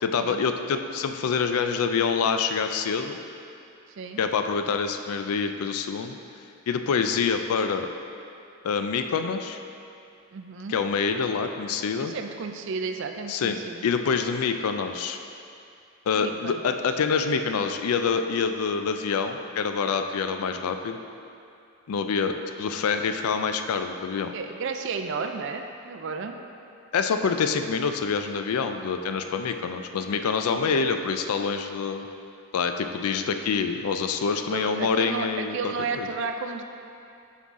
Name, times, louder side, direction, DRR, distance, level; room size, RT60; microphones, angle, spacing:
voice 1, 0.0-3.2 4.2-6.2 6.7-7.9 8.6-9.6 10.7-12.1 13.3-15.2 16.1-21.0 21.9-24.3 26.9-32.1 32.5-36.1, left 5 dB, 85° left, 7 dB, 0.4 m, -26 dB
voice 2, 10.3-10.8 11.3-11.5 12.0-13.9 16.1-16.6 22.3-22.4 24.3-26.4 30.5-30.9 34.5-36.6, right 4 dB, 55° right, 5 dB, 0.4 m, -33 dB
6.0 x 5.5 x 3.6 m, 2.6 s
head